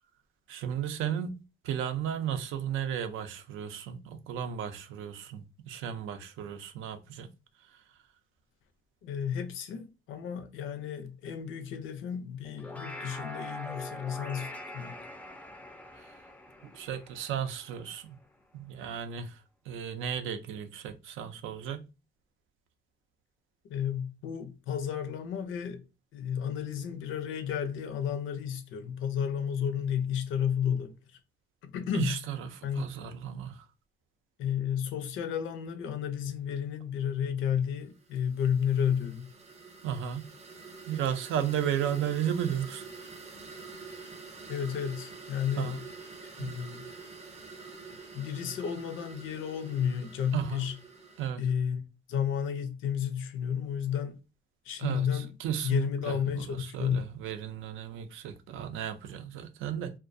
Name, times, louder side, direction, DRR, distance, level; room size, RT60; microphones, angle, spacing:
voice 1, 0.5-7.3 7.6-7.8 15.9-16.2 16.6-18.2 18.5-21.9 31.9-33.7 39.8-40.3 40.9-42.9 45.6-45.8 46.4-46.6 50.3-50.7 51.2-51.4 54.8-59.9, right 9 dB, 85° right, 0.4 m, -34 dB
voice 2, 9.0-15.0 23.7-25.8 26.1-30.9 31.6-32.1 32.6-32.8 34.4-39.3 44.5-45.8 46.3-46.8 48.1-50.7 51.4-51.8 52.1-54.2 54.7-55.3 55.6-57.0, left 8 dB, 80° left, 0.5 m, -32 dB
sound 1, 12.4-18.0, left 1 dB, 5° left, 0.3 m, -43 dB
sound 2, 37.9-51.3, right 4 dB, 35° right, 0.6 m, -47 dB
2.3 x 2.1 x 2.5 m
cardioid pair, 90°, 20 cm